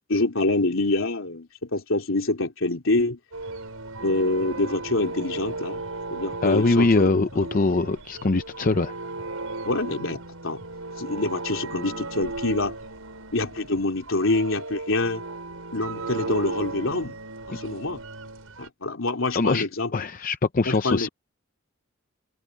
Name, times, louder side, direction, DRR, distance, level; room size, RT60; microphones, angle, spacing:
voice 1, 0.1-3.2 4.0-5.8 6.1-7.1 7.4-7.5 9.6-10.6 11.0-12.8 13.3-15.2 15.7-17.1 17.5-18.0 18.6-19.9 20.7-21.1, left 2 dB, 70° left, 3.1 m, -26 dB
sound 1, 3.3-18.7, right 2 dB, 80° right, 5.8 m, -36 dB
voice 2, 6.4-8.9 19.3-19.7 19.9-21.1, left 3 dB, 40° left, 0.6 m, -22 dB
open air
head